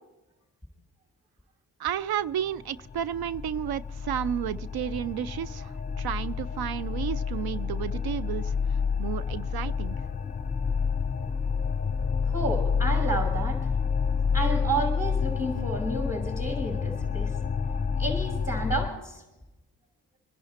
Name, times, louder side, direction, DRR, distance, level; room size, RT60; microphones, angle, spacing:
voice 1, 1.8-8.5 9.0-10.0, right 10 dB, 60° right, 18 dB, 0.5 m, -32 dB
sound 1, 2.6-18.9, left 6 dB, 20° left, 0.9 m, -29 dB
voice 2, 12.3-13.6 14.3-17.3 18.0-19.2, right 2 dB, 5° right, -5 dB, 5.3 m, -31 dB
24.0 x 11.0 x 4.3 m, 1.0 s
supercardioid pair, 45°, 43 cm